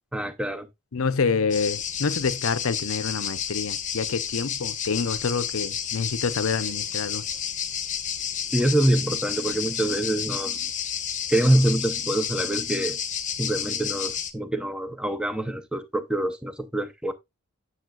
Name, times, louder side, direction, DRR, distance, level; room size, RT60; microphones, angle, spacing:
voice 1, 0.1-0.7 8.5-10.7 11.3-13.0 13.4-17.1, right 1 dB, 5° right, 0.7 m, -25 dB
voice 2, 0.9-7.3, left 5 dB, 65° left, 0.6 m, -27 dB
sound 1, 1.5-14.3, left 8 dB, 35° left, 0.9 m, -31 dB
9.1 x 7.0 x 2.4 m
head